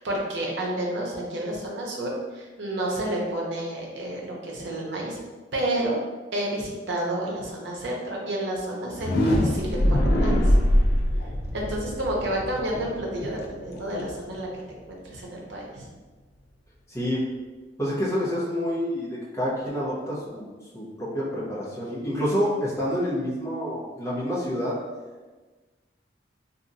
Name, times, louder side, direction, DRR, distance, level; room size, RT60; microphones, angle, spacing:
voice 1, 0.0-5.2 5.5-6.0 6.3-10.5 11.5-15.9, right 1 dB, 70° right, -2 dB, 0.7 m, -30 dB
sound 1, 8.8-14.7, equal, 60° left, 0.4 m, -24 dB
voice 2, 16.9-17.2 17.8-24.8, equal, 15° left, -8 dB, 0.9 m, -28 dB
2.9 x 2.4 x 2.6 m, 1.3 s
head